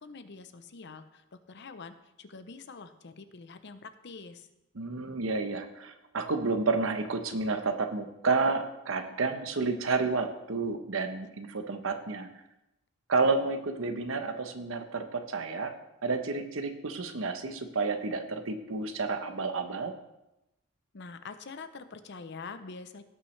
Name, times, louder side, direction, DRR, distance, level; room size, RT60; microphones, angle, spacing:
voice 1, 0.0-4.5 20.9-23.0, left 4 dB, 55° left, 10 dB, 0.7 m, -45 dB
voice 2, 4.7-12.3 13.1-15.7 16.0-19.9, right 3 dB, 70° right, 7 dB, 0.9 m, -30 dB
17.0 x 5.8 x 3.3 m, 0.92 s
head